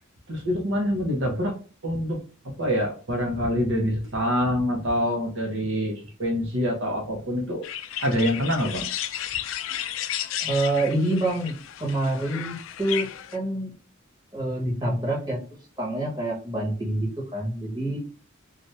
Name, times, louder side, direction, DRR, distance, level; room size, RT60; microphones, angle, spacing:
voice 1, 0.3-1.5 1.8-2.2 2.6-7.7 8.0-8.9, equal, 70° right, 1 dB, 0.8 m, -25 dB
sound 1, 7.6-13.4, left 11 dB, 75° left, 0.3 m, -33 dB
voice 2, 10.4-11.5 11.8-13.7 14.3-15.4 15.8-18.0, right 1 dB, 20° right, -4 dB, 1.2 m, -27 dB
2.7 x 2.5 x 3.1 m, 0.37 s
head